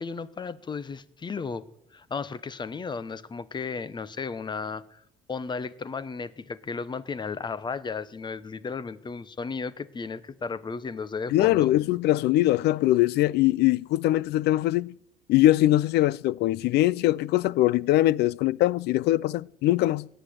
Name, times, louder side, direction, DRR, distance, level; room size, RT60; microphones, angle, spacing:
voice 1, 0.0-1.6 1.9-5.0 5.3-11.7, left 5 dB, 25° left, 1.0 m, -34 dB
voice 2, 11.3-14.9 15.3-20.1, left 15 dB, 80° left, 0.5 m, -22 dB
17.5 x 10.0 x 7.9 m
cardioid pair, 110°, 17 cm